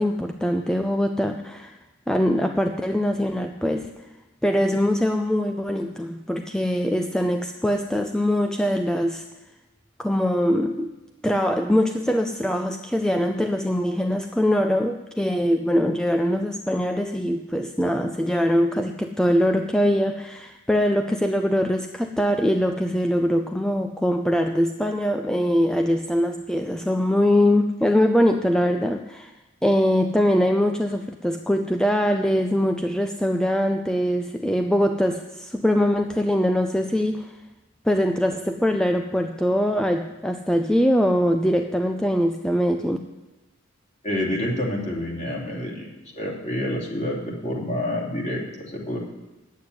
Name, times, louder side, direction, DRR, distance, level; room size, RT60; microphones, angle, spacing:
voice 1, 0.0-1.7 2.1-3.9 4.4-9.2 10.0-10.9 11.2-29.3 29.6-37.3 37.9-43.0, equal, 5° left, 5 dB, 0.4 m, -22 dB
voice 2, 44.0-45.9 46.1-49.0, left 1 dB, 35° left, -2 dB, 2.8 m, -28 dB
9.6 x 8.4 x 9.6 m, 1.0 s
head